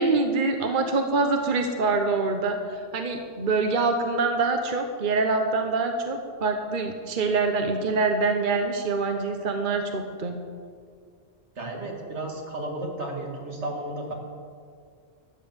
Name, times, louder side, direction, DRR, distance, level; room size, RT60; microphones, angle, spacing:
voice 1, 0.0-10.4, right 3 dB, 50° right, 5 dB, 1.1 m, -25 dB
voice 2, 11.6-14.1, right 1 dB, 80° right, 0 dB, 2.6 m, -33 dB
13.5 x 10.0 x 7.2 m, 2.1 s
omnidirectional pair, 1.2 m